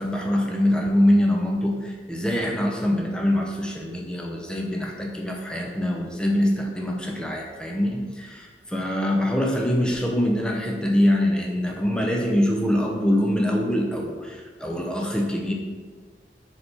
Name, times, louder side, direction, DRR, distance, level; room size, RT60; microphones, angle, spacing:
voice 1, 0.0-15.5, left 1 dB, 5° left, 0 dB, 0.4 m, -24 dB
3.9 x 3.3 x 2.9 m, 1.5 s
head